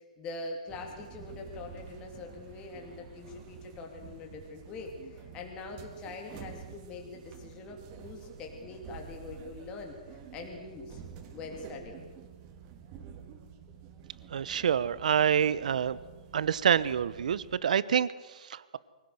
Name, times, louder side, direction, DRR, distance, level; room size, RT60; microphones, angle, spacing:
voice 1, 0.0-11.0 11.3-12.1, left 3 dB, 20° left, 2 dB, 2.7 m, -43 dB
sound 1, 0.7-17.6, right 7 dB, 30° right, 2.7 m, -49 dB
voice 2, 14.3-16.0 16.3-18.8, right 8 dB, 65° right, 18 dB, 1.0 m, -27 dB
24.0 x 16.5 x 7.9 m, 1.3 s
hypercardioid pair, 160°, 4 cm